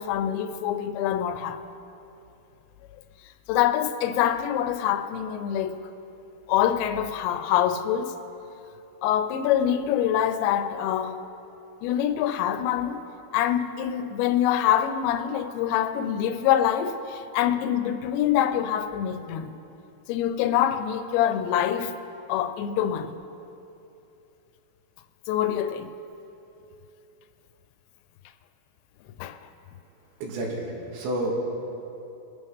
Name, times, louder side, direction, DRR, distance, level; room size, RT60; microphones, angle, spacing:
voice 1, 0.0-1.6 3.5-5.8 6.5-8.1 9.0-11.2 11.8-13.0 13.3-19.5 20.1-21.9 22.3-23.2 25.3-25.9 29.2-29.4, left 10 dB, 85° left, 2.8 m, -25 dB
voice 2, 30.2-30.7 30.9-31.3, right 1 dB, 80° right, 3.9 m, -29 dB
21.5 x 9.3 x 3.6 m
omnidirectional pair, 5.1 m